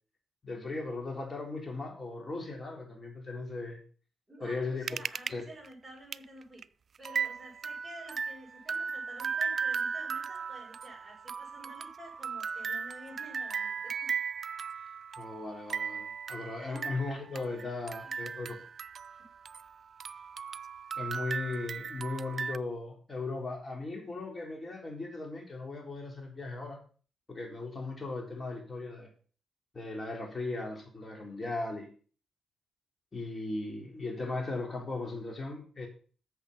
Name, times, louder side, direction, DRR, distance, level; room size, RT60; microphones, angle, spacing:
voice 1, 0.4-3.8 4.4-4.8 5.3-5.5 15.2-18.6 21.0-26.8 27.3-29.1 29.7-31.9 33.1-35.9, left 3 dB, 35° left, 2 dB, 3.7 m, -37 dB
voice 2, 4.3-6.6 7.0-14.1 16.6-16.9 17.9-18.3 19.2-19.3, right 1 dB, 5° right, -9 dB, 6.1 m, -50 dB
sound 1, 4.9-5.3 5.6-5.7 6.1-6.2 6.6-6.7 7.0-19.7 20.0-22.6, right 6 dB, 55° right, 0.3 m, -37 dB
8.0 x 6.7 x 5.8 m, 0.40 s
supercardioid pair, 60°, 0 cm